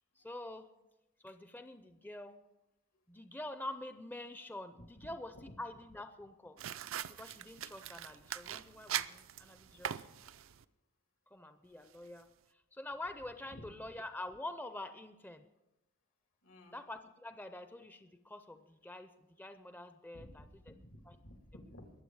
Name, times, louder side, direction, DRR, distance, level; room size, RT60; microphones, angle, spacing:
voice 1, 0.2-0.7 1.2-2.4 3.1-6.6 7.1-10.1 11.3-15.4 16.7-19.1 19.4-20.7 21.1-21.2, left 1 dB, 10° left, 9 dB, 0.5 m, -46 dB
sound 1, 6.6-10.6, right 10 dB, 75° right, 0.5 m, -42 dB
voice 2, 16.4-16.8 20.1-20.5 20.8-21.9, left 1 dB, 85° left, 3 dB, 2.6 m, -54 dB
22.0 x 7.6 x 4.7 m, 0.93 s
head